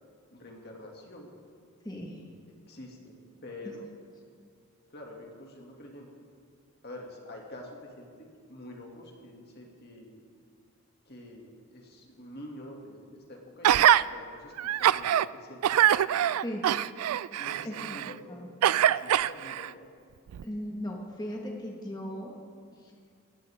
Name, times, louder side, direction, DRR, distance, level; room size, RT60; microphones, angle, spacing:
voice 1, 0.3-1.3 2.7-3.9 4.9-6.1 6.8-10.2 11.1-15.9 17.4-18.5 18.9-19.9, left 1 dB, 50° left, 0 dB, 2.4 m, -47 dB
voice 2, 1.8-2.2 16.4-16.7 17.6-18.0 18.3-18.5 20.4-22.4 22.8-22.9, equal, 20° left, -1 dB, 1.6 m, -37 dB
Gasp, 13.6-14.0 14.6-15.3 15.6-18.1 18.6-19.7 20.3-20.4, right 11 dB, 90° right, 0.3 m, -23 dB
17.5 x 16.0 x 3.6 m, 2.2 s
head